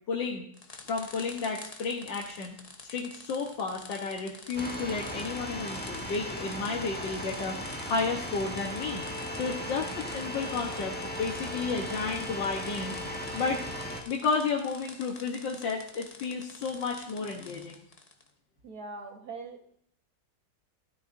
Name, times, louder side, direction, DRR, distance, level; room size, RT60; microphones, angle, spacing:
voice 1, 0.1-0.5 0.9-2.6 2.8-9.1 9.4-13.0 13.3-13.6 14.1-17.8, left 4 dB, 85° left, -1 dB, 1.8 m, -32 dB
sound 1, 0.5-18.3, left 3 dB, 30° left, 0.8 m, -49 dB
sound 2, 4.5-14.0, equal, 5° left, 1.4 m, -37 dB
voice 2, 18.6-19.7, right 3 dB, 55° right, 3 dB, 2.0 m, -42 dB
13.0 x 13.0 x 2.7 m, 0.69 s
omnidirectional pair, 2.0 m